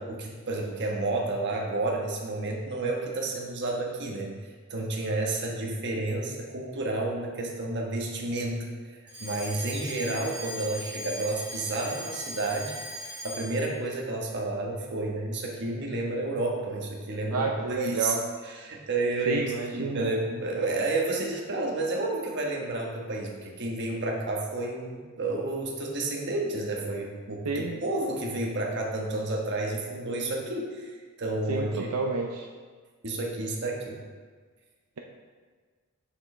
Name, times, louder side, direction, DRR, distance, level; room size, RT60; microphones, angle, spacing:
voice 1, 0.0-4.3 4.7-12.7 13.0-18.1 18.4-19.4 19.7-31.9 33.0-34.0, right 2 dB, 50° right, -1 dB, 1.2 m, -31 dB
Alarm, 9.1-13.7, equal, 20° right, 2.1 m, -39 dB
voice 2, 17.3-18.2 19.3-20.1 27.4-27.8 31.5-32.5, right 4 dB, 80° right, 1 dB, 0.6 m, -30 dB
7.2 x 7.1 x 3.3 m, 1.5 s
head